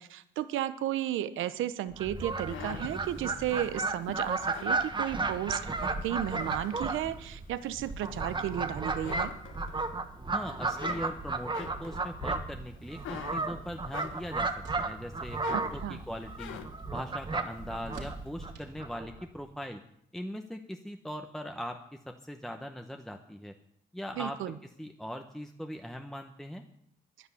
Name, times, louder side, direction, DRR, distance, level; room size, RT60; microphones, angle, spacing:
voice 1, 0.0-9.3 15.5-16.0 24.2-24.5, right 12 dB, 85° right, 13 dB, 0.9 m, -34 dB
Fowl, 1.9-19.2, right 3 dB, 25° right, 1.3 m, -34 dB
sound 1, 2.2-5.6 6.0-7.1 7.6-8.6 8.9-10.2 10.5-14.5 14.9-16.9, left 8 dB, 85° left, 1.4 m, -45 dB
voice 2, 10.3-16.6 16.9-19.8 20.1-21.8 22.1-23.5 23.9-24.4 24.8-26.6, equal, ahead, 5 dB, 1.0 m, -40 dB
sound 2, 13.5-19.6, right 3 dB, 70° right, 3.5 m, -54 dB
10.5 x 9.9 x 8.5 m, 0.73 s
cardioid pair, 90°, 20 cm